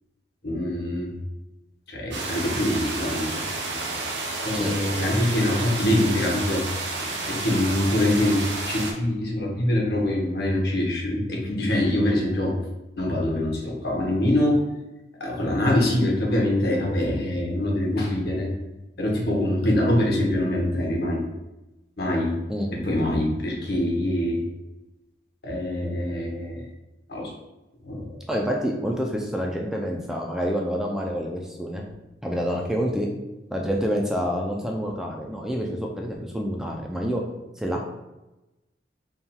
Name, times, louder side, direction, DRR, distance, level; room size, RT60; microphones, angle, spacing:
voice 1, 0.4-1.1 1.9-3.4 4.4-6.6 7.3-12.6 13.0-14.6 15.2-18.5 19.0-21.2 22.0-22.3 22.7-24.4 25.4-26.6 27.1-27.3 27.8-28.2, left 1 dB, 60° left, -1 dB, 1.0 m, -24 dB
sound 1, 2.1-8.9, right 3 dB, 80° right, 0.8 m, -30 dB
voice 2, 28.3-31.9 32.2-33.1 33.5-37.2 37.6-37.9, equal, 5° right, 0 dB, 0.3 m, -27 dB
3.6 x 2.3 x 4.2 m, 1.0 s
head